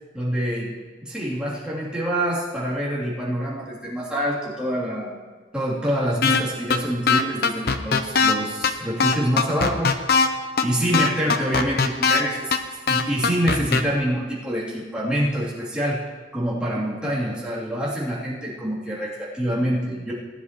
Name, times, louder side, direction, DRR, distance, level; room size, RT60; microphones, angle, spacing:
voice 1, 0.1-0.7 1.0-5.2 5.5-10.2 10.6-12.6 12.9-16.0 16.3-20.1, equal, 5° right, -9 dB, 3.1 m, -26 dB
sound 1, 6.2-6.4 6.7-6.8 7.1-8.3 8.6-8.7 9.0-10.3 10.6-10.7 10.9-12.2 12.5-12.6 12.9-13.8, left 5 dB, 60° left, 0.7 m, -19 dB
19.5 x 10.0 x 3.1 m, 1.4 s
head